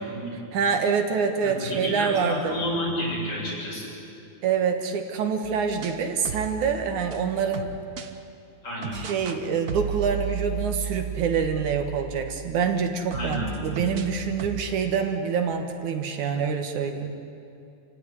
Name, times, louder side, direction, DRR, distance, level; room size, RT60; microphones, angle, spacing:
voice 1, 0.5-2.5 4.4-7.8 8.9-17.1, right 6 dB, 70° right, 5 dB, 2.9 m, -26 dB
voice 2, 1.4-3.9 8.6-9.0 13.1-13.5, equal, 50° left, -5 dB, 8.8 m, -30 dB
sound 1, 5.4-8.1 8.8-9.4 9.7-12.7 13.1-14.7, right 6 dB, 85° right, 0.8 m, -34 dB
28.5 x 16.5 x 9.9 m, 2.6 s
omnidirectional pair, 3.6 m